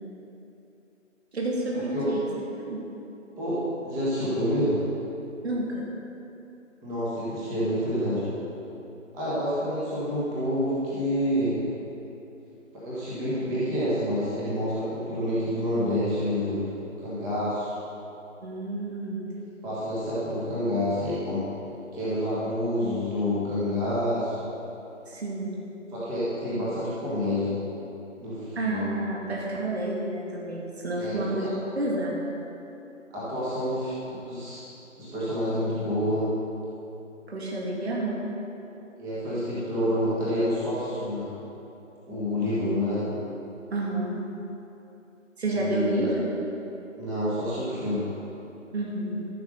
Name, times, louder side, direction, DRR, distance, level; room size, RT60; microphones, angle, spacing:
voice 1, 1.3-2.3 2.6-2.8 5.4-5.9 18.4-19.3 25.1-25.5 28.6-31.5 31.8-32.3 37.3-38.2 43.7-44.2 45.4-46.3 48.7-49.3, right 1 dB, 55° right, -3 dB, 2.3 m, -29 dB
voice 2, 3.4-4.8 6.8-8.3 9.1-11.6 12.7-16.6 17.0-17.8 19.6-21.5 21.9-24.5 25.9-27.6 28.2-28.8 31.0-31.1 31.4-31.5 33.1-34.6 35.0-36.3 39.0-41.3 42.1-43.0 45.5-46.1 47.0-48.1, equal, 10° right, -10 dB, 1.5 m, -28 dB
14.0 x 6.0 x 6.6 m, 2.9 s
figure-of-eight pair, 155°, 38 cm